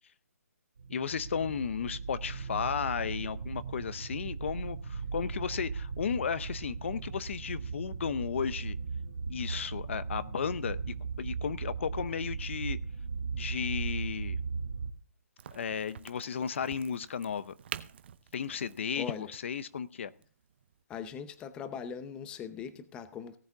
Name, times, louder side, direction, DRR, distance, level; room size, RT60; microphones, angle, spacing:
sound 1, 0.8-14.9, right 5 dB, 65° right, 1.9 m, -37 dB
voice 1, 0.9-8.8 9.3-12.8 13.3-14.4 15.5-17.5 18.3-20.1, left 7 dB, 50° left, 16 dB, 0.7 m, -34 dB
Crack, 15.4-20.8, right 9 dB, 40° right, 0.8 m, -47 dB
voice 2, 18.9-19.3 20.9-23.4, left 7 dB, 10° left, 12 dB, 0.7 m, -40 dB
18.0 x 7.9 x 3.5 m, 0.43 s
hypercardioid pair, 160°, 8 cm